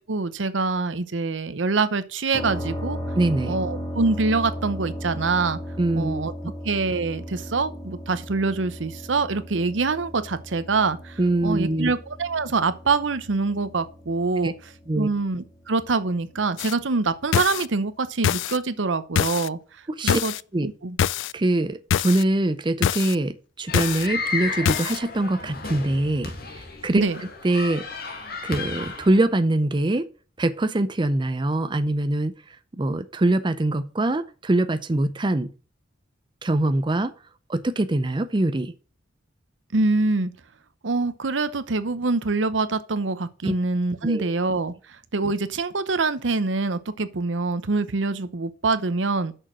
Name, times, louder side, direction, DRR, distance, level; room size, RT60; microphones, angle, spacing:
voice 1, 0.1-3.0 3.5-5.6 5.9-6.3 6.6-14.5 15.0-19.6 20.0-20.3 20.6-21.0 26.9-27.2 39.7-40.3 40.8-44.7 45.1-49.3, right 3 dB, 80° right, 0.8 m, -25 dB
sound 1, 2.3-16.0, equal, 20° left, 1.8 m, -36 dB
voice 2, 3.2-3.5 5.8-6.5 11.2-11.9 14.4-14.5 14.9-15.1 19.9-20.2 20.5-20.7 21.3-26.3 26.8-27.0 27.4-27.9 28.4-30.1 30.4-32.3 32.7-35.5 36.4-37.1 37.5-38.7 43.4-43.5 44.0-44.3, right 2 dB, 25° right, 0.6 m, -23 dB
sound 2, 16.6-16.7 17.3-17.7 18.2-18.6 19.2-19.5 20.1-20.4 21.0-21.3 21.9-22.2 22.8-23.2 23.7-24.1 24.7-25.0, left 9 dB, 75° left, 0.3 m, -24 dB
sound 3, 23.7-29.2, left 4 dB, 55° left, 1.9 m, -33 dB
6.6 x 6.4 x 6.1 m
head